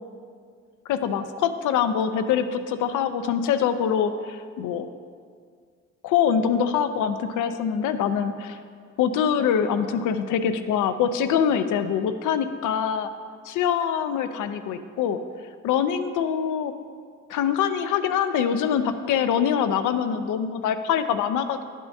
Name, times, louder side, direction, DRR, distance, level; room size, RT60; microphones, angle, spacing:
voice 1, 0.9-4.9 6.0-8.6 9.0-13.1 13.5-15.2 15.6-16.7 17.3-21.6, left 8 dB, 80° left, 10 dB, 0.6 m, -24 dB
11.0 x 9.2 x 2.7 m, 2.1 s
cardioid pair, 90°, 30 cm